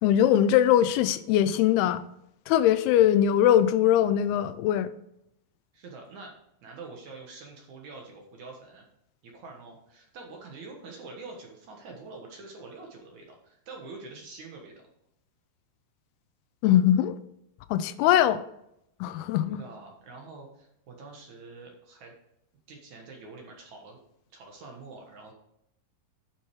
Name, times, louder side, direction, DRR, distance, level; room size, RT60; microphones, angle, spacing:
voice 1, 0.0-2.0 2.5-4.9 16.6-17.2 17.7-18.4 19.0-19.6, left 11 dB, 85° left, 13 dB, 2.5 m, -21 dB
voice 2, 5.7-6.3 6.6-8.8 9.2-14.8 19.4-22.1 22.7-24.0 24.3-25.3, right 3 dB, 60° right, 1 dB, 2.3 m, -45 dB
10.0 x 6.2 x 4.7 m, 0.79 s
omnidirectional pair, 4.6 m